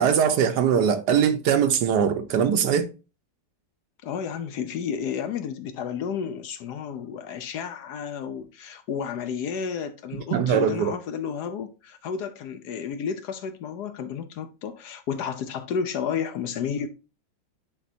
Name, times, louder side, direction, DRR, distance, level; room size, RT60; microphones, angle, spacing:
voice 1, 0.0-2.9 10.3-10.9, right 7 dB, 70° right, 1.2 m, -21 dB
voice 2, 4.0-16.9, left 7 dB, 70° left, 1.1 m, -32 dB
10.0 x 3.9 x 2.7 m
omnidirectional pair, 2.0 m